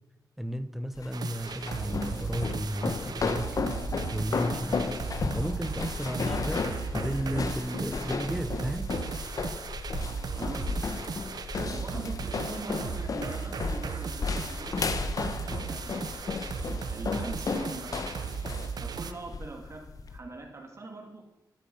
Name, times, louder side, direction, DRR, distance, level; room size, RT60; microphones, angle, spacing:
voice 1, 0.4-3.6 4.1-8.9, equal, 5° right, 11 dB, 0.8 m, -34 dB
sound 1, 0.9-20.2, left 4 dB, 55° left, 1.0 m, -34 dB
sound 2, 1.1-19.1, right 6 dB, 65° right, 0.7 m, -36 dB
voice 2, 10.4-11.0 11.7-16.3 16.9-18.1 18.8-21.2, right 3 dB, 45° right, 1 dB, 2.4 m, -42 dB
12.5 x 11.5 x 5.4 m, 0.95 s
wide cardioid pair, 120°, 7 cm